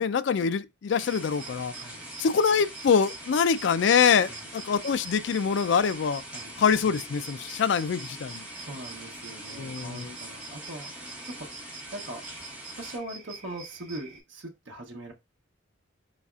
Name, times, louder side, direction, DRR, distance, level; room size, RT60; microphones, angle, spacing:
voice 1, 0.0-1.7 2.2-6.2 6.6-8.4 9.6-10.1, left 6 dB, 60° left, 0.4 m, -24 dB
sound 1, 0.9-14.2, right 4 dB, 35° right, 1.8 m, -46 dB
sound 2, 1.0-13.0, equal, 5° right, 1.5 m, -44 dB
voice 2, 1.7-2.1 4.3-4.5 6.3-6.6 8.5-11.5 11.9-12.3 12.8-15.1, right 1 dB, 65° right, 0.9 m, -41 dB
4.0 x 4.0 x 2.4 m
head